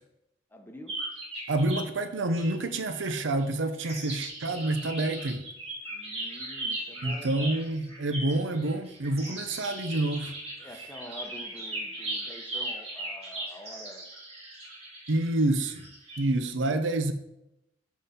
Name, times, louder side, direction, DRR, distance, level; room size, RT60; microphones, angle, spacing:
voice 1, 0.5-0.9 5.9-7.6 10.6-14.2, left 1 dB, 10° left, 0.8 m, -47 dB
sound 1, 0.9-1.9 2.3-3.5 3.7-16.2, right 1 dB, 35° right, 2.5 m, -38 dB
voice 2, 1.5-5.5 7.0-10.4 15.1-15.9 16.2-17.1, right 2 dB, 80° right, 0.7 m, -28 dB
11.0 x 3.9 x 4.2 m
head